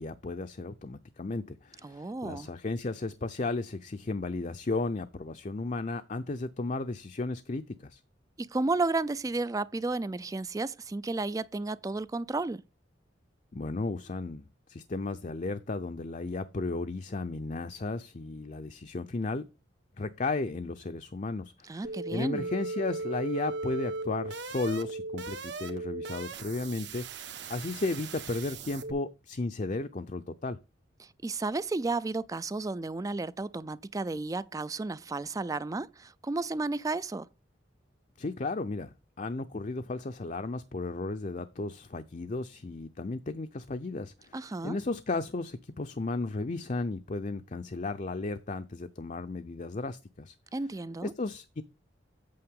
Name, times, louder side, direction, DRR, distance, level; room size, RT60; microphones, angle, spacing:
voice 1, 0.0-8.0 13.5-19.5 20.0-21.8 22.1-30.6 38.2-44.4 44.6-50.3 51.0-51.6, left 3 dB, 40° left, 0.6 m, -34 dB
voice 2, 1.8-2.5 8.4-12.6 21.7-22.5 31.0-37.3 44.3-44.8 50.5-51.1, right 3 dB, 20° right, 0.3 m, -33 dB
sound 1, 21.8-28.9, right 3 dB, 70° right, 1.4 m, -38 dB
8.6 x 7.6 x 3.7 m
head